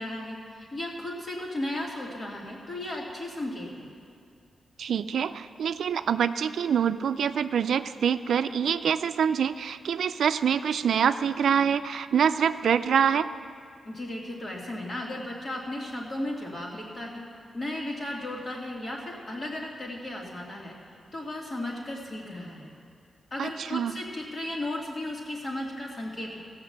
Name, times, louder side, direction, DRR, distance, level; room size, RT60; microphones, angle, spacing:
voice 1, 0.0-3.9 13.8-17.2 17.5-20.8 21.1-22.7 23.3-26.4, left 1 dB, 40° left, -2 dB, 2.4 m, -35 dB
voice 2, 4.8-13.3 23.4-24.0, right 7 dB, 85° right, 11 dB, 0.4 m, -25 dB
16.5 x 5.9 x 7.9 m, 2.4 s
wide cardioid pair, 130°, 0 cm